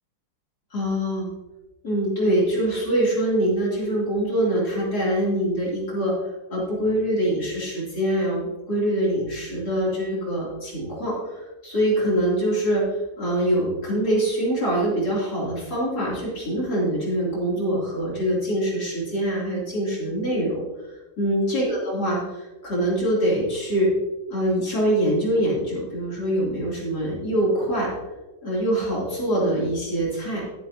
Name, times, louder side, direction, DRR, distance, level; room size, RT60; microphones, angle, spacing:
voice 1, 0.7-1.3 1.8-6.1 6.5-23.9 24.3-27.9 28.4-30.4, right 1 dB, 50° left, -6 dB, 3.4 m, -24 dB
11.0 x 9.8 x 2.7 m, 1.2 s
omnidirectional pair, 2.2 m